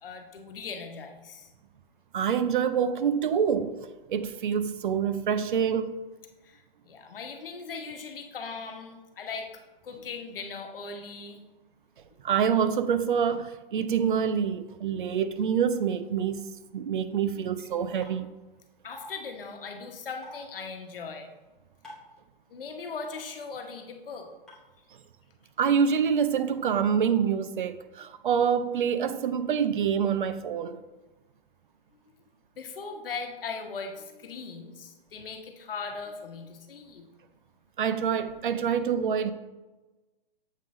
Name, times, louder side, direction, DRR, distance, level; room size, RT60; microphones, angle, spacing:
voice 1, 0.0-1.5 6.4-9.5 9.8-11.4 18.8-21.3 22.5-24.3 32.6-37.1, left 4 dB, 70° left, 1.1 m, -39 dB
voice 2, 2.1-6.0 12.2-16.5 16.7-18.3 25.6-30.8 37.8-39.3, right 7 dB, 60° right, 0.5 m, -26 dB
sound 1, 18.0-18.1 18.9-19.1 20.2-20.4 21.8-22.1 23.1-23.2 24.5-24.6, left 1 dB, ahead, 0.9 m, -45 dB
7.4 x 3.8 x 3.7 m
hypercardioid pair, 165°, 29 cm